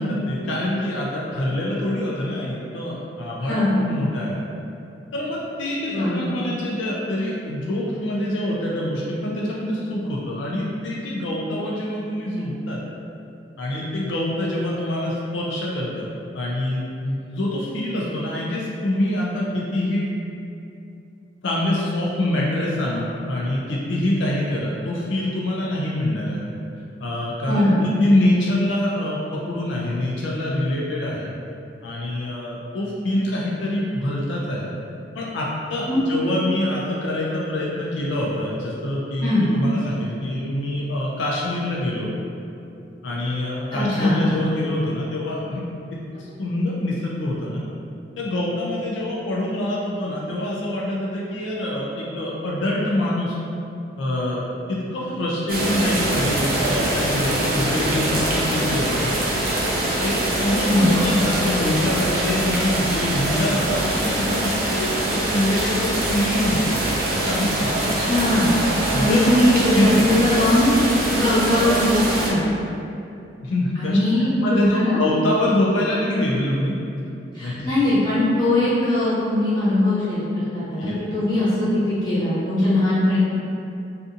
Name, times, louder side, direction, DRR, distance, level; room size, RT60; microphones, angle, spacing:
voice 1, 0.0-4.4 5.1-12.8 13.6-16.1 16.3-20.0 21.4-26.5 27.0-31.3 31.8-34.7 35.1-42.1 43.0-47.6 48.2-53.3 54.0-54.4 54.7-59.1 60.0-66.8 67.3-67.7 68.9-69.2 69.7-70.0 73.4-76.8 77.4-77.8 80.8-81.0, left 1 dB, 85° left, -4 dB, 0.4 m, -25 dB
voice 2, 3.4-3.8 5.9-6.3 27.5-27.8 35.9-36.0 39.2-39.5 43.7-44.2 60.6-60.9 67.8-68.6 68.9-70.7 71.0-72.4 73.7-75.0 77.3-80.3 80.5-83.2, left 1 dB, 25° left, -13 dB, 1.1 m, -20 dB
sound 1, 55.5-72.3, right 1 dB, 55° right, 0.5 m, -23 dB
2.6 x 2.5 x 2.4 m, 2.7 s
head